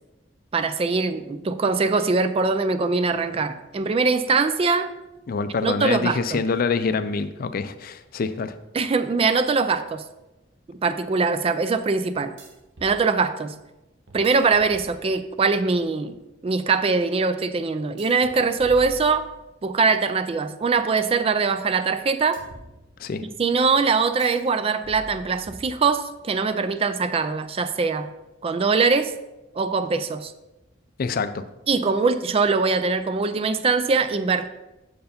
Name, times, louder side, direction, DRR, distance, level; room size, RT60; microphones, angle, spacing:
voice 1, 0.5-4.9 5.6-6.4 8.7-10.0 10.7-12.3 12.8-13.5 14.1-16.2 16.4-19.3 19.6-22.4 23.2-28.1 28.4-29.1 29.5-30.3 31.7-34.5, right 4 dB, 30° right, 11 dB, 0.4 m, -22 dB
voice 2, 5.3-8.5 23.0-23.2 31.0-31.4, left 4 dB, 50° left, 12 dB, 0.4 m, -26 dB
sound 1, 12.4-13.0 14.1-15.4 18.0-19.7 22.3-23.3 24.2-24.5 24.8-26.2, right 1 dB, 80° right, 1.0 m, -45 dB
6.7 x 4.7 x 5.1 m, 0.99 s
head